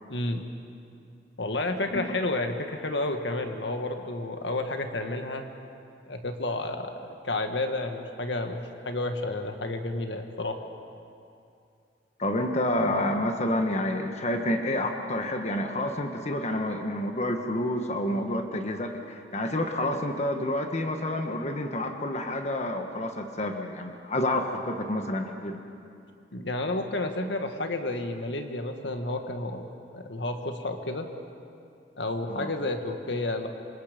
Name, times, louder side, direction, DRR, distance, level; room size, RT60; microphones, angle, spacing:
voice 1, 0.1-0.5 1.4-5.4 6.1-10.6 26.3-29.7 29.9-31.1 32.0-33.5, left 2 dB, 75° left, 5 dB, 1.7 m, -31 dB
voice 2, 12.2-25.6 32.3-32.5, left 1 dB, 40° left, 4 dB, 1.4 m, -29 dB
27.0 x 25.5 x 5.2 m, 2.5 s
head